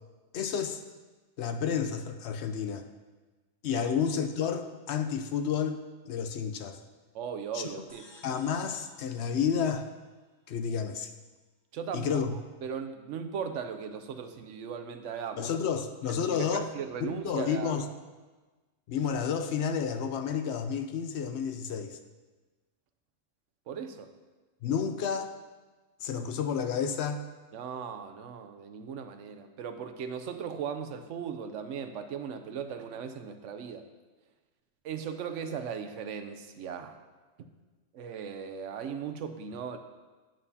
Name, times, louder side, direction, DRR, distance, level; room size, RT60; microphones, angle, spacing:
voice 1, 0.3-0.8 1.4-2.9 3.6-5.8 6.1-6.8 7.5-7.7 8.2-9.9 10.5-11.1 11.9-12.3 15.4-16.7 17.0-17.9 18.9-22.0 24.6-25.3 26.0-27.2, left 7 dB, 70° left, 8 dB, 0.8 m, -30 dB
voice 2, 7.1-8.1 11.7-12.2 12.6-15.5 16.1-17.9 23.7-24.1 27.5-33.9 34.8-37.0 37.4-37.5 37.9-39.8, right 7 dB, 80° right, 8 dB, 1.0 m, -38 dB
sound 1, 7.9-10.5, left 1 dB, 25° left, 0.9 m, -57 dB
8.9 x 8.8 x 2.8 m, 1.3 s
omnidirectional pair, 1.2 m